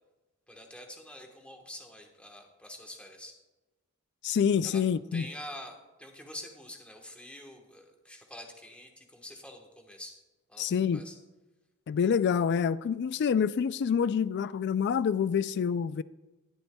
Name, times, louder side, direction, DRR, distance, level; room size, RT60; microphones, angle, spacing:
voice 1, 0.5-3.3 4.6-4.8 5.1-10.1 10.5-11.1, left 1 dB, 5° left, 1.2 m, -46 dB
voice 2, 4.2-5.3 10.6-11.0 11.9-16.0, left 7 dB, 50° left, 0.3 m, -27 dB
20.0 x 7.9 x 2.3 m
head